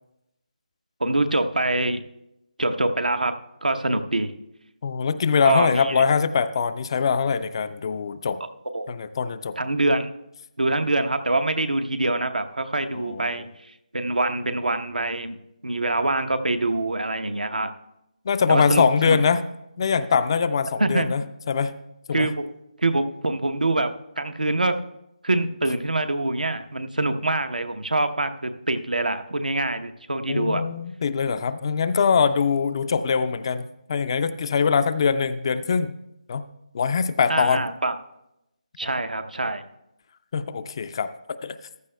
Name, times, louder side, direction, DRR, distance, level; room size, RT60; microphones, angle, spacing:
voice 1, 1.0-2.0 2.6-4.3 5.4-6.0 8.7-8.9 9.6-10.1 10.6-17.7 18.5-19.2 20.8-21.1 22.1-22.4 22.8-24.8 25.2-30.6 37.3-38.0 38.8-39.6, right 2 dB, 85° right, 8 dB, 0.8 m, -25 dB
voice 2, 4.8-8.4 8.9-9.6 12.9-13.4 18.2-19.4 19.8-21.7 22.1-22.3 30.3-36.0 36.3-36.4 36.7-37.6 40.3-41.6, left 6 dB, 35° left, 13 dB, 0.4 m, -23 dB
15.0 x 11.0 x 2.2 m, 0.85 s
figure-of-eight pair, 155°, 4 cm